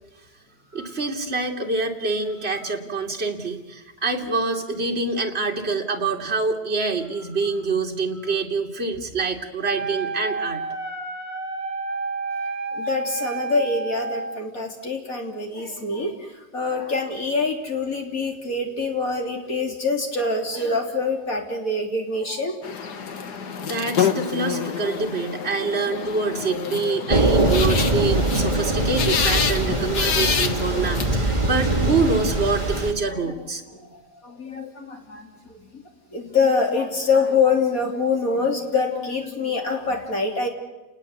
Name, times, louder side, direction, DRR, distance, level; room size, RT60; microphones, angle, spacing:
voice 1, 0.7-10.6 23.6-33.6, right 3 dB, 35° right, 2 dB, 2.8 m, -26 dB
Wind instrument woodwind instrument, 9.6-14.4, right 3 dB, 65° right, 2.1 m, -30 dB
voice 2, 12.7-22.6 33.1-33.3 33.7-35.8 36.1-40.5, left 4 dB, 55° left, 2 dB, 3.9 m, -25 dB
sound 1, 22.6-31.0, left 7 dB, 75° left, 2.0 m, -27 dB
Thunder / Rain, 27.1-32.9, right 2 dB, 15° right, 2.8 m, -22 dB
30.0 x 19.5 x 8.2 m, 1.1 s
omnidirectional pair, 1.8 m